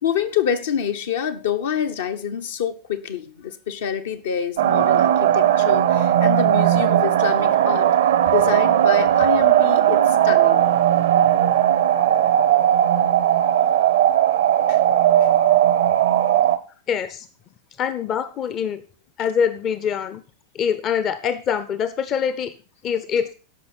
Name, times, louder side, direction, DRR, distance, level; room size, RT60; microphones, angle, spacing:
voice 1, 0.0-7.9 8.3-10.6 14.7-14.8, left 8 dB, 60° left, 1.1 m, -26 dB
sound 1, 4.6-16.6, right 11 dB, 60° right, 0.8 m, -17 dB
voice 2, 16.9-17.3 17.8-18.8 19.2-20.2 20.5-22.5 22.8-23.3, left 7 dB, 30° left, 0.8 m, -24 dB
13.5 x 5.6 x 6.0 m
figure-of-eight pair, 90°, 0 cm